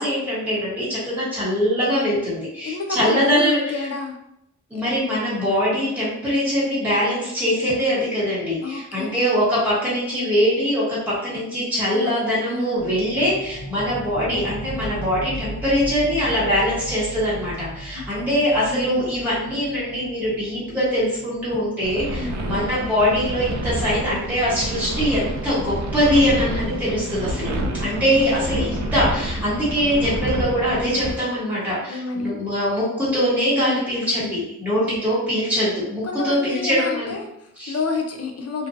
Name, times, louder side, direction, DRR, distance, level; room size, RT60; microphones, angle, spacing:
voice 1, 0.0-3.9 4.7-27.5 27.8-37.1 37.6-37.8, equal, 5° right, -9 dB, 1.0 m, -22 dB
voice 2, 2.6-4.2 4.7-4.8 8.6-9.3 11.9-12.7 17.9-18.4 18.7-19.0 22.2-22.6 27.8-28.3 31.9-32.4 34.7-35.1 36.0-38.7, left 3 dB, 50° left, 3 dB, 0.5 m, -30 dB
sound 1, 12.8-23.8, right 1 dB, 90° left, 0.9 m, -37 dB
sound 2, 21.8-31.2, right 1 dB, 60° right, 0.5 m, -28 dB
2.6 x 2.2 x 2.5 m, 0.81 s
wide cardioid pair, 95°, 31 cm